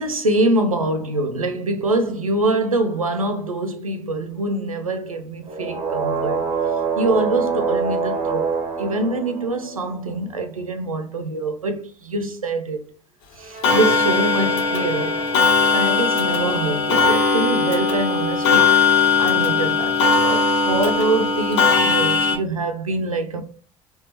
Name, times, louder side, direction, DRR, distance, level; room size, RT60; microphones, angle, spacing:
voice 1, 0.0-6.4 7.0-8.5 8.8-12.8 13.4-15.3 15.7-18.8 19.2-23.4, right 2 dB, 90° right, 0.5 m, -24 dB
sound 1, 5.4-10.0 13.4-16.3, right 5 dB, 45° right, 1.5 m, -27 dB
Clock, 13.6-22.4, left 4 dB, 65° left, 0.8 m, -19 dB
3.4 x 2.8 x 2.9 m
figure-of-eight pair, 55°, 17 cm